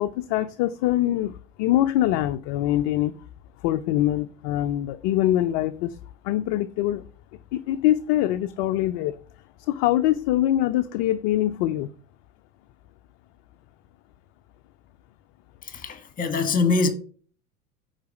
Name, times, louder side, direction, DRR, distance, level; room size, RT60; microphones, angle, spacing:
voice 1, 0.0-1.3 1.6-3.1 3.6-6.0 6.2-7.0 7.5-9.2 9.6-11.9, left 13 dB, 35° left, 0.4 m, -23 dB
voice 2, 15.6-16.9, left 4 dB, 20° left, 1.6 m, -23 dB
9.3 x 4.0 x 6.3 m
figure-of-eight pair, 80°, 46 cm